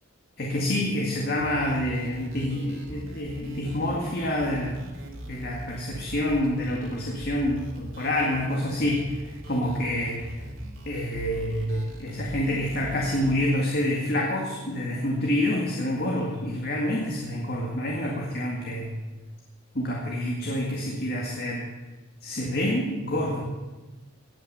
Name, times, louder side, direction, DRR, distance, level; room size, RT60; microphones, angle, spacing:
voice 1, 0.4-4.9 5.3-9.0 9.5-10.3 10.9-18.9 19.7-21.7 22.2-23.4, left 1 dB, 50° left, -2 dB, 2.0 m, -27 dB
sound 1, 1.4-13.4, right 1 dB, 90° right, 2.9 m, -41 dB
18.5 x 6.3 x 8.0 m, 1.2 s
head